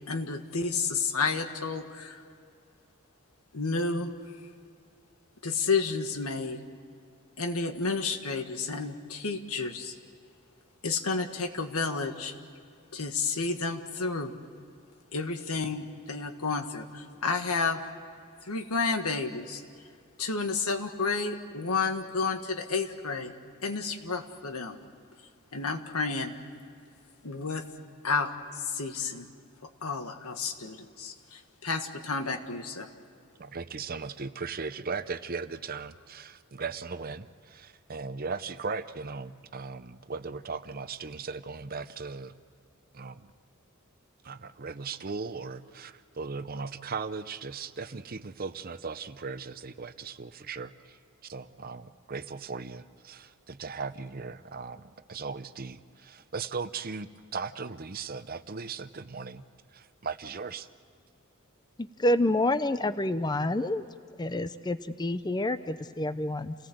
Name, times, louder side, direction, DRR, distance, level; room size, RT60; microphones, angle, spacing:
voice 1, 0.1-2.2 3.5-4.1 5.4-6.6 7.4-9.9 10.8-12.3 12.9-14.3 15.1-17.8 18.5-19.6 20.2-23.3 23.6-24.8 25.5-26.3 27.2-27.6 28.0-29.3 29.8-32.9, left 4 dB, 90° left, 6 dB, 1.7 m, -31 dB
voice 2, 33.4-42.3 42.9-43.3 44.2-51.0 51.2-59.4 59.7-60.7, right 4 dB, 40° right, 12 dB, 0.7 m, -38 dB
voice 3, 62.0-63.8 64.2-66.5, left 1 dB, 20° left, 12 dB, 0.5 m, -28 dB
29.0 x 18.5 x 7.9 m, 2.3 s
head